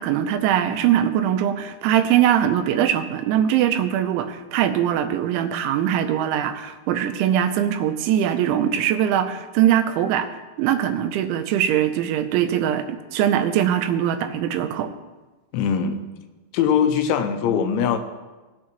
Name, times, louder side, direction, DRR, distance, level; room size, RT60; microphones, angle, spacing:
voice 1, 0.0-10.3 10.6-14.9, right 10 dB, 90° right, 7 dB, 3.1 m, -21 dB
voice 2, 15.5-16.1 16.5-18.0, left 7 dB, 85° left, 7 dB, 3.2 m, -21 dB
18.5 x 8.4 x 3.0 m, 1.2 s
omnidirectional pair, 5.3 m